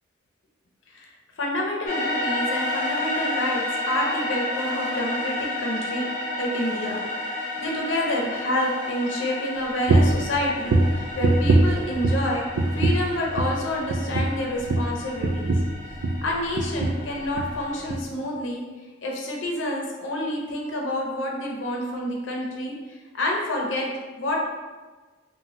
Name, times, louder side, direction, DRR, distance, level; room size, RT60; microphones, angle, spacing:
voice 1, 0.9-6.1 6.4-7.0 7.3-12.5 12.7-15.6 16.2-18.6 19.0-23.9 24.2-24.4, left 1 dB, 80° left, -1 dB, 0.6 m, -28 dB
sound 1, 1.9-17.8, left 1 dB, 50° left, 0.8 m, -32 dB
sound 2, 9.9-10.2 10.7-12.3 12.5-13.1 13.3-13.6 13.9-16.3 16.5-17.0 17.3-17.5 17.9-18.0, right 2 dB, 70° right, 0.3 m, -22 dB
2.7 x 2.2 x 3.0 m, 1.3 s
head